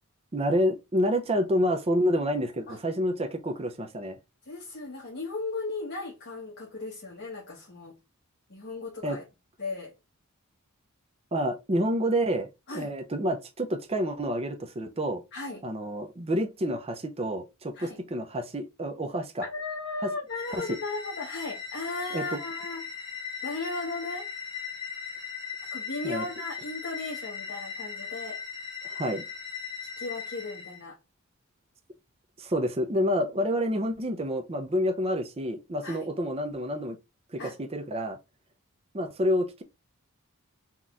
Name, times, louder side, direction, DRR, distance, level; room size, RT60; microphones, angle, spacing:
voice 1, 0.3-4.2 9.0-9.2 11.3-15.2 15.6-19.4 20.0-20.1 20.6-20.8 22.1-22.4 26.0-26.2 28.8-29.2 32.4-37.0 37.3-38.2 38.9-39.6, equal, 25° right, 0.6 m, -28 dB
voice 2, 4.5-7.9 8.5-9.2 9.6-9.9 12.7-12.9 15.3-15.6 17.7-18.0 19.4-22.9 23.4-24.3 25.7-28.4 30.0-31.0 35.8-36.1 37.4-37.5, left 3 dB, 50° left, 1.2 m, -36 dB
sound 1, 20.3-30.8, left 6 dB, 25° left, 2.1 m, -39 dB
4.0 x 3.0 x 3.6 m
head